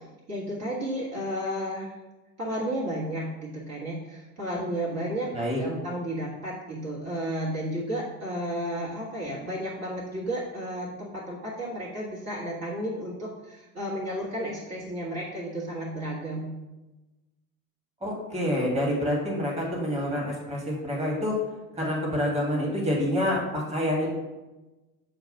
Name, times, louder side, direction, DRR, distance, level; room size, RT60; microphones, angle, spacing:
voice 1, 0.3-2.0 2.4-16.5, equal, 35° right, -6 dB, 1.7 m, -32 dB
voice 2, 18.0-21.4 21.8-24.1, left 1 dB, 15° right, -3 dB, 1.9 m, -27 dB
7.0 x 2.5 x 5.5 m, 1.1 s
figure-of-eight pair, 60°, 44 cm